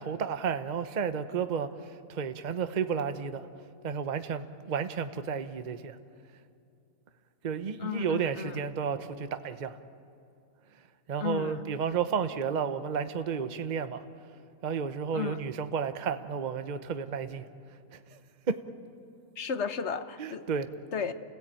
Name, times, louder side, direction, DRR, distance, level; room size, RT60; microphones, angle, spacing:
voice 1, 0.0-3.5 3.8-6.0 7.4-9.8 11.1-14.0 14.6-17.4 17.9-18.2 18.5-18.6 20.2-20.7, right 6 dB, 40° right, 10 dB, 0.9 m, -32 dB
voice 2, 7.8-8.6 11.2-11.7 15.1-15.4 19.4-20.4 20.9-21.1, left 6 dB, 55° left, 10 dB, 1.2 m, -34 dB
29.0 x 16.5 x 8.9 m, 2.5 s
omnidirectional pair, 1.4 m